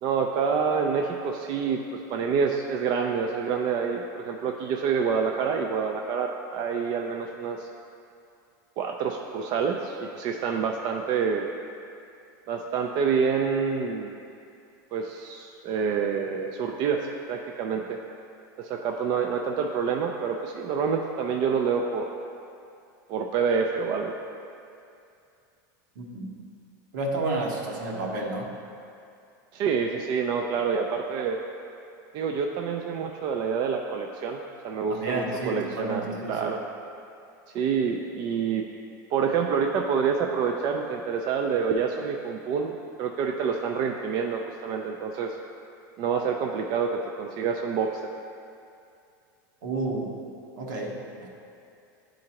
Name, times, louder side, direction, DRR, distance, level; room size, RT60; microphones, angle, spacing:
voice 1, 0.0-7.7 8.8-11.5 12.5-14.2 14.9-18.0 18.6-22.1 23.1-24.2 29.5-31.4 32.1-36.6 37.5-38.7 39.1-45.4 46.0-48.1, right 6 dB, 45° right, 2 dB, 0.4 m, -27 dB
voice 2, 26.0-26.3 26.9-28.5 34.9-36.5 49.6-50.1 50.6-51.3, right 2 dB, 75° right, -1 dB, 1.1 m, -31 dB
10.5 x 3.8 x 2.9 m, 2.5 s
supercardioid pair, 140°, 10 cm